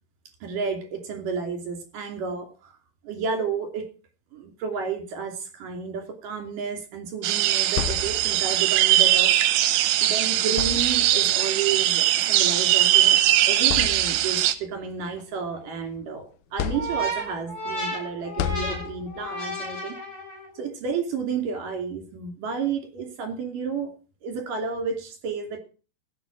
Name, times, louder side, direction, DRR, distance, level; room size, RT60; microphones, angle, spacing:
voice 1, 0.4-2.8 3.0-3.9 4.3-9.3 10.0-13.2 13.5-20.0 20.5-23.9 24.2-25.6, right 5 dB, 55° right, 5 dB, 4.2 m, -31 dB
sound 1, 7.2-14.5, right 13 dB, 80° right, 3.0 m, -21 dB
sound 2, 7.4-8.6 9.8-10.0 10.5-11.3 12.4-12.6 13.1-13.2 13.6-14.5 15.0-16.0 16.6-17.4 18.4-19.3, left 11 dB, 75° left, 2.5 m, -32 dB
sound 3, 16.7-20.6, right 1 dB, 20° left, 7.7 m, -33 dB
15.5 x 8.0 x 6.3 m, 0.36 s
omnidirectional pair, 4.9 m